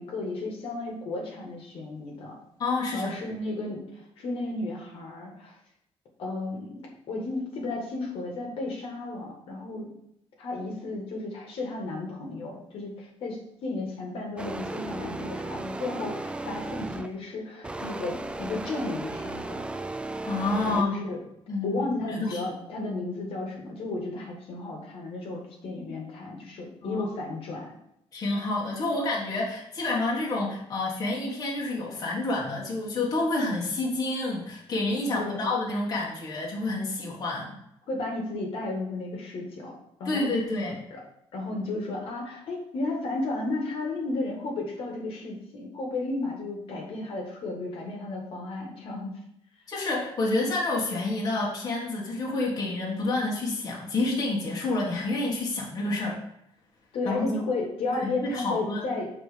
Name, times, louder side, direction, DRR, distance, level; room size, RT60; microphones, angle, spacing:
voice 1, 0.0-2.3 2.9-5.5 6.2-9.9 10.4-19.6 20.7-21.2 21.6-27.7 35.1-35.6 37.9-40.3 40.9-41.0 41.3-49.1 56.9-59.1, left 2 dB, 60° left, 0 dB, 1.7 m, -33 dB
voice 2, 2.6-3.1 20.2-21.0 21.5-21.8 22.1-22.4 26.8-27.0 28.1-37.5 40.0-40.8 49.7-56.2 57.0-57.3 57.9-58.8, left 2 dB, 35° left, -3 dB, 1.6 m, -28 dB
sound 1, 14.4-17.2 17.6-20.8, right 2 dB, 10° right, 0.3 m, -35 dB
6.3 x 4.4 x 5.0 m, 0.77 s
cardioid pair, 145°, 11 cm